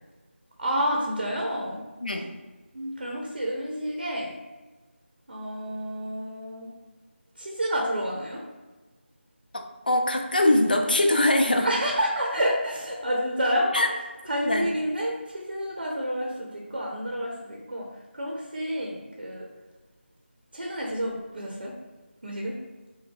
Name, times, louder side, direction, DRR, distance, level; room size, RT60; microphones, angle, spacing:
voice 1, 0.6-1.8 2.7-4.4 5.3-6.7 7.4-8.4 11.6-13.7 14.3-17.9 18.1-19.4 20.5-21.7 22.2-22.5, equal, 55° right, -1 dB, 0.8 m, -29 dB
voice 2, 9.5-11.7 13.7-13.9 14.4-14.7, left 1 dB, 45° left, 4 dB, 0.5 m, -22 dB
5.6 x 2.0 x 4.6 m, 1.2 s
figure-of-eight pair, 170°, 7 cm